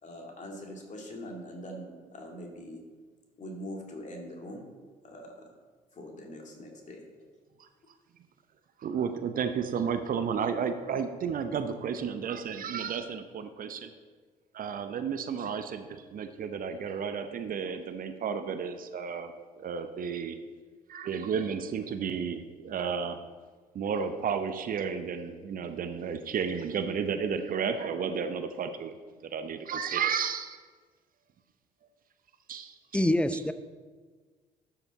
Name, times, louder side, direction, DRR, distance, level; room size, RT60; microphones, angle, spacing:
voice 1, 0.0-2.8 3.4-4.6 5.0-5.5 5.9-7.0, equal, 40° left, 1 dB, 2.3 m, -42 dB
voice 2, 8.8-13.9 14.5-20.4 20.9-23.2 23.7-29.0 29.2-30.6 32.5-33.0 33.3-33.4, right 6 dB, 45° right, 9 dB, 0.7 m, -32 dB
voice 3, 32.9-33.5, left 1 dB, 5° left, 11 dB, 0.6 m, -25 dB
12.0 x 5.9 x 4.2 m, 1.4 s
figure-of-eight pair, 50°, 20 cm